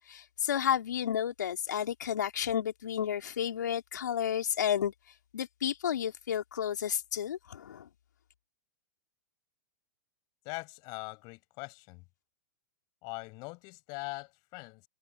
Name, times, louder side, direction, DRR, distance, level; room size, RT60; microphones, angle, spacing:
voice 1, 0.1-4.9 5.3-7.9, left 9 dB, 75° left, 3.6 m, -31 dB
voice 2, 10.4-12.0 13.0-14.9, left 28 dB, 45° left, 7.0 m, -42 dB
hypercardioid pair, 110°, 10 cm